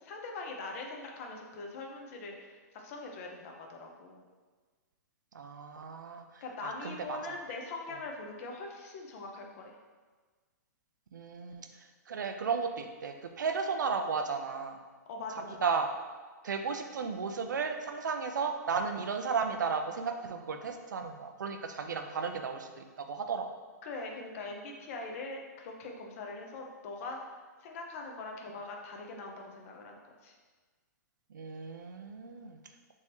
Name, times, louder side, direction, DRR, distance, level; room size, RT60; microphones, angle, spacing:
voice 1, 0.0-4.2 6.4-9.7 15.1-15.6 23.8-27.2 27.6-30.3, left 3 dB, 50° left, 1 dB, 0.8 m, -42 dB
voice 2, 5.3-6.2 6.6-7.2 11.1-11.7 12.1-14.8 15.6-15.9 16.4-23.5 31.3-32.6, right 5 dB, 85° right, 6 dB, 0.5 m, -34 dB
3.6 x 3.0 x 4.4 m, 1.4 s
hypercardioid pair, 125°, 10 cm